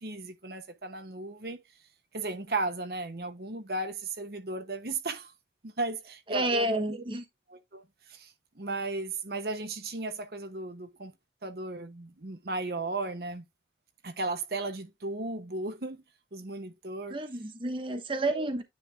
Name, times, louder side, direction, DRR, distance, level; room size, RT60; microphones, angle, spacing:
voice 1, 0.0-1.6 2.1-5.3 5.6-7.0 7.5-7.8 8.1-11.1 11.4-13.4 14.0-16.0 16.3-17.2 18.2-18.5, right 2 dB, 55° right, 1.0 m, -35 dB
voice 2, 6.3-7.2 17.1-18.6, right 2 dB, 30° right, 1.1 m, -30 dB
9.9 x 3.7 x 3.5 m
head